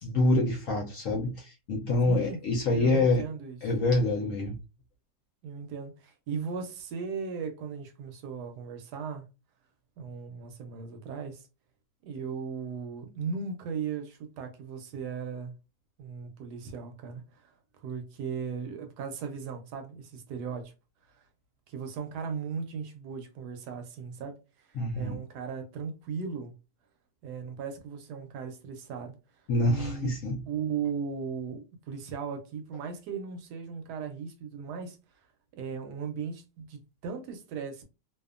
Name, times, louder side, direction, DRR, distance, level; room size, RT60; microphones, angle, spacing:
voice 1, 0.0-3.2 3.6-4.5 24.8-25.2 29.5-30.4, left 2 dB, 65° left, 0.8 m, -26 dB
voice 2, 2.1-2.4 2.7-3.6 5.4-9.2 10.0-11.5 12.0-15.6 16.0-17.5 17.8-20.7 21.1-21.3 21.7-26.5 27.2-29.2 29.6-30.1 30.4-35.2 35.6-37.8, right 6 dB, 75° right, 1.1 m, -37 dB
2.7 x 2.3 x 2.4 m
omnidirectional pair, 1.8 m